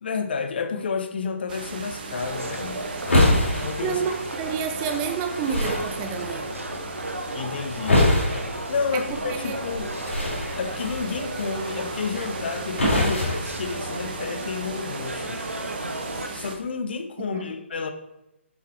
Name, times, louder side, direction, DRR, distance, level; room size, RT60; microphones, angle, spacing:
voice 1, 0.0-2.9 3.6-4.0 7.3-8.1 8.7-10.0 10.5-15.5 16.3-17.9, left 5 dB, 50° left, 7 dB, 1.0 m, -30 dB
sound 1, 1.5-16.6, right 4 dB, 45° right, 1.3 m, -38 dB
sound 2, 2.1-16.3, right 1 dB, 90° right, 1.3 m, -35 dB
sound 3, 2.2-14.2, left 1 dB, 65° left, 3.8 m, -27 dB
voice 2, 3.8-6.5 8.9-9.6 17.3-17.5, right 7 dB, 20° right, 5 dB, 0.8 m, -29 dB
8.1 x 7.2 x 4.5 m, 0.92 s
figure-of-eight pair, 140°, 7 cm